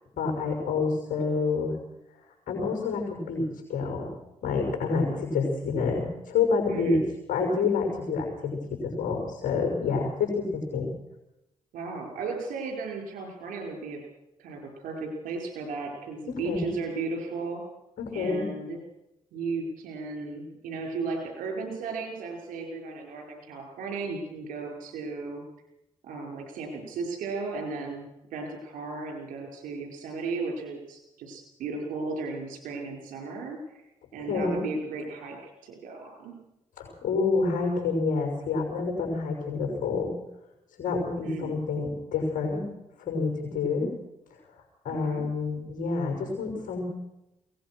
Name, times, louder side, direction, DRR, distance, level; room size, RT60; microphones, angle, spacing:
voice 1, 0.2-1.8 2.5-3.4 3.7-4.1 4.4-7.0 7.3-10.9 16.3-16.7 18.0-18.5 34.3-34.6 36.8-40.1 40.8-42.7 43.0-43.9 44.8-46.8, left 4 dB, 75° left, 2 dB, 6.2 m, -28 dB
voice 2, 6.7-7.1 11.7-14.0 14.4-17.6 18.1-18.8 19.3-25.4 26.0-33.8 34.1-35.4 35.6-36.4 41.2-41.6 44.9-45.3, right 3 dB, 85° right, 2 dB, 5.9 m, -35 dB
22.0 x 19.0 x 6.3 m, 0.89 s
supercardioid pair, 50°, 14 cm